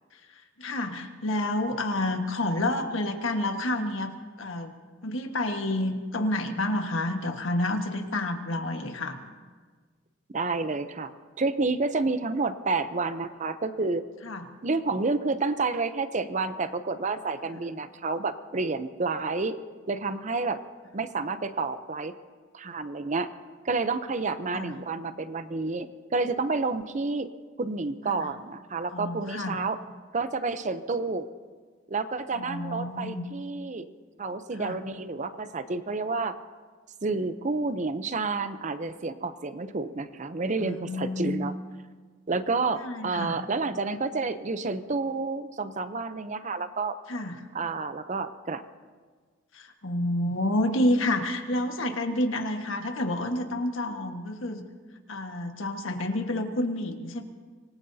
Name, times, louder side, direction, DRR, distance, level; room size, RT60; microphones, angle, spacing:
voice 1, 0.6-4.1 4.4-4.7 5.0-9.2 14.2-14.4 17.5-17.6 24.5-24.7 28.1-28.2 28.9-29.6 32.3-33.2 34.6-34.8 40.6-41.5 42.8-43.4 47.1-47.4 49.5-54.6 55.1-57.2, left 1 dB, 85° left, 4 dB, 1.5 m, -29 dB
voice 2, 10.3-11.1 11.4-14.0 14.6-19.5 19.9-20.6 20.9-22.1 22.5-23.3 23.6-25.9 26.1-27.3 27.6-29.8 30.1-31.3 31.9-33.9 34.2-36.4 37.0-41.5 42.3-47.0 47.5-48.6, right 3 dB, 40° right, 11 dB, 0.6 m, -29 dB
25.5 x 19.5 x 2.8 m, 1.5 s
head